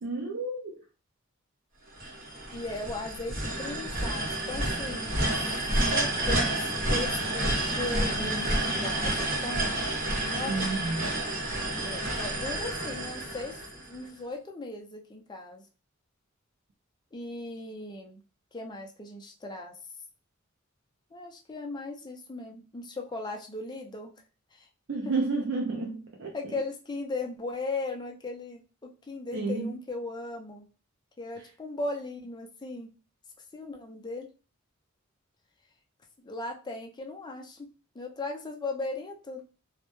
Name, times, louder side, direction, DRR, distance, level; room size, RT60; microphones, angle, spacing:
voice 1, 0.0-0.8 10.5-11.1 24.9-26.4 29.3-29.7, right 3 dB, 60° right, 0.4 m, -31 dB
sound 1, 2.0-14.1, right 1 dB, 45° right, 0.9 m, -30 dB
voice 2, 2.5-5.5 5.9-6.6 6.9-9.9 10.2-10.6 11.7-15.6 17.1-18.2 18.5-19.8 21.1-24.1 24.5-24.7 25.0-25.1 26.3-30.7 31.2-32.9 33.5-34.3 36.2-37.7 37.9-39.4, left 2 dB, 20° left, 0.4 m, -37 dB
2.1 x 2.0 x 2.9 m
head